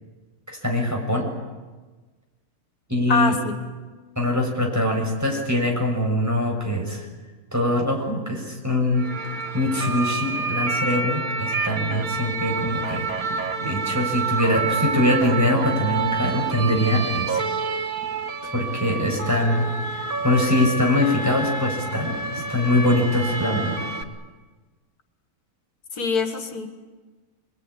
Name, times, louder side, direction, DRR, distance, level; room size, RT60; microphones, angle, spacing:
voice 1, 0.5-1.3 2.9-3.4 4.2-7.1 7.5-9.1 9.5-13.1 13.4-17.4 18.5-22.2 22.5-23.8, left 1 dB, 10° right, 0 dB, 6.8 m, -23 dB
voice 2, 3.1-3.5 18.4-18.5 25.9-26.7, left 5 dB, 80° left, 7 dB, 2.4 m, -24 dB
sound 1, 9.0-24.0, right 4 dB, 70° right, 2.3 m, -28 dB
26.0 x 22.0 x 10.0 m, 1.3 s
omnidirectional pair, 1.6 m